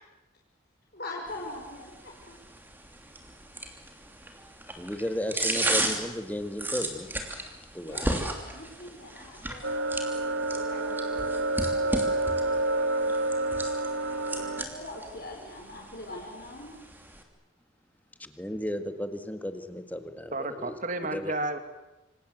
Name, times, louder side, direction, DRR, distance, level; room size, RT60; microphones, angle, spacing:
voice 1, 0.9-2.4 7.8-13.3 14.3-16.8, left 1 dB, 50° left, -1 dB, 5.0 m, -43 dB
sound 1, 1.3-17.2, right 1 dB, 10° right, 2.9 m, -35 dB
voice 2, 4.8-7.1 7.7-8.2 18.2-21.3, left 1 dB, 10° left, 9 dB, 1.8 m, -35 dB
sound 2, 9.6-14.6, right 2 dB, 85° right, 1.6 m, -28 dB
voice 3, 20.3-21.6, right 2 dB, 40° right, 9 dB, 2.5 m, -32 dB
27.0 x 26.0 x 8.0 m, 1.0 s
head